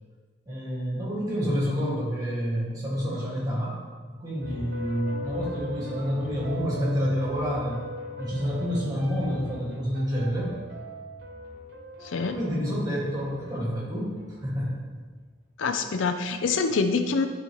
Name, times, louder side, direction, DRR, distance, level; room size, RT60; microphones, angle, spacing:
voice 1, 0.5-3.8 4.1-7.8 8.2-10.6 12.1-14.1 14.4-14.9, equal, 20° right, -5 dB, 1.9 m, -28 dB
sound 1, 4.4-14.6, right 1 dB, 55° right, 1.1 m, -40 dB
voice 2, 12.0-12.4 15.6-17.3, left 4 dB, 90° left, 8 dB, 0.5 m, -25 dB
10.5 x 4.0 x 3.1 m, 1.5 s
head